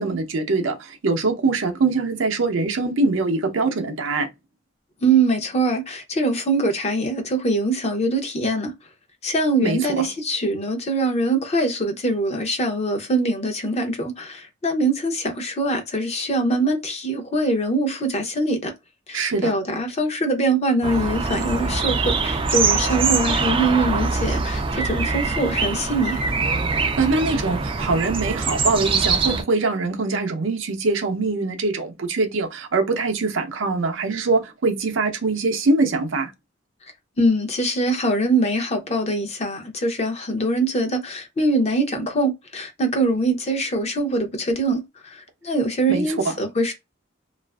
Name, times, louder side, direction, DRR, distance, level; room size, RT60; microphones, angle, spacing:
voice 1, 0.0-4.3 9.6-10.0 19.1-19.5 27.0-36.3 45.9-46.3, right 3 dB, 75° right, 0.6 m, -23 dB
voice 2, 5.0-8.7 9.2-18.7 19.1-26.2 37.2-46.7, right 2 dB, 35° left, 0.6 m, -23 dB
sound 1, 20.8-29.4, right 4 dB, 25° right, 0.3 m, -23 dB
2.4 x 2.4 x 2.2 m
head